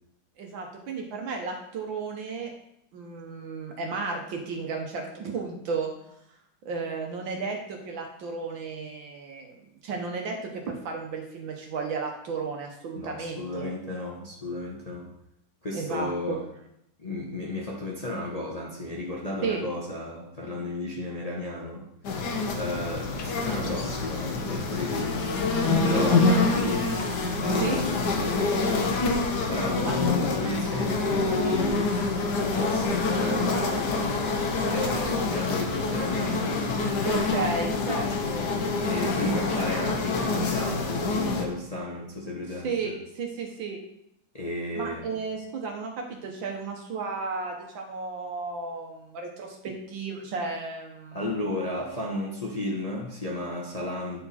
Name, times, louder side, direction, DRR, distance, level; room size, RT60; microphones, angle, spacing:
voice 1, 0.4-2.5 2.9-5.9 6.6-13.7 15.7-16.4 19.4-19.6 25.6-26.1 27.5-27.8 29.8-29.9 37.0-38.5 42.6-43.8 44.7-51.4, right 4 dB, 75° right, 2 dB, 1.7 m, -33 dB
voice 2, 12.9-15.1 15.6-16.4 17.0-21.8 22.5-25.3 25.9-26.9 27.3-29.0 29.4-32.0 32.5-36.5 38.8-42.9 44.3-45.1 51.1-54.2, left 1 dB, 25° left, -3 dB, 0.8 m, -33 dB
sound 1, 22.0-41.4, left 3 dB, 60° left, 1.4 m, -26 dB
9.0 x 4.5 x 4.2 m, 0.77 s
omnidirectional pair, 2.2 m